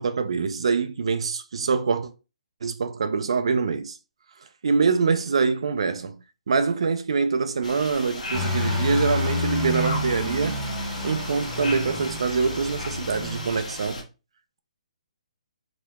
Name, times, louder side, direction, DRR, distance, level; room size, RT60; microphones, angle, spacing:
voice 1, 0.0-2.1 2.6-4.0 4.6-6.1 6.5-10.6 11.0-14.0, right 5 dB, 50° right, 0.4 m, -24 dB
sound 1, 7.6-14.0, left 2 dB, 80° left, 0.9 m, -36 dB
sound 2, 8.3-13.6, left 2 dB, 5° right, 0.7 m, -29 dB
2.9 x 2.1 x 3.3 m
hypercardioid pair, 180°, 4 cm